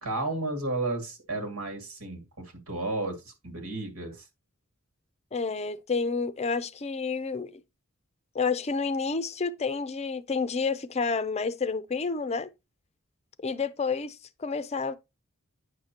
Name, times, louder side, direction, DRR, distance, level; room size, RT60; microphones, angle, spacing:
voice 1, 0.0-4.3, right 2 dB, 85° right, 2.3 m, -33 dB
voice 2, 5.3-7.5 8.3-12.5 13.4-15.0, left 4 dB, 30° left, 0.5 m, -29 dB
9.4 x 6.5 x 2.9 m
head